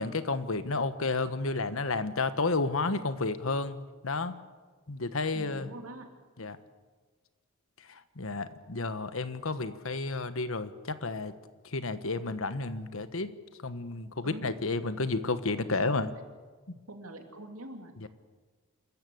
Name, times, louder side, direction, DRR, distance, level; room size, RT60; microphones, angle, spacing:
voice 1, 0.0-3.8 4.0-4.4 4.9-5.7 6.4-6.6 7.9-11.3 11.7-13.3 13.6-16.1 18.0-18.1, left 3 dB, 75° left, 12 dB, 1.3 m, -31 dB
voice 2, 5.3-6.1 14.2-14.6 15.7-15.9 16.9-18.1, right 1 dB, 90° right, 4 dB, 2.9 m, -44 dB
27.0 x 14.5 x 8.6 m, 1.4 s
head